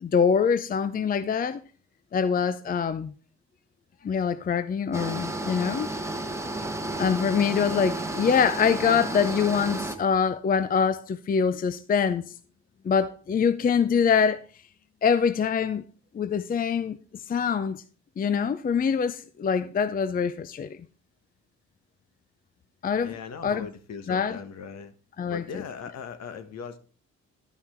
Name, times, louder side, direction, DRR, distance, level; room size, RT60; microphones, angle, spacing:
voice 1, 0.0-1.6 2.1-3.1 4.0-5.9 7.0-12.2 12.8-14.4 15.0-15.8 16.1-17.0 17.3-17.8 18.2-20.8 22.8-23.2 23.4-23.7 24.1-24.4 25.2-25.4, left 6 dB, 30° left, 0.5 m, -24 dB
sound 1, 4.9-10.0, right 2 dB, 10° right, 1.0 m, -32 dB
voice 2, 23.0-24.9 25.3-26.8, left 6 dB, 60° left, 1.3 m, -39 dB
11.5 x 5.7 x 4.3 m
cardioid pair, 90°, 30 cm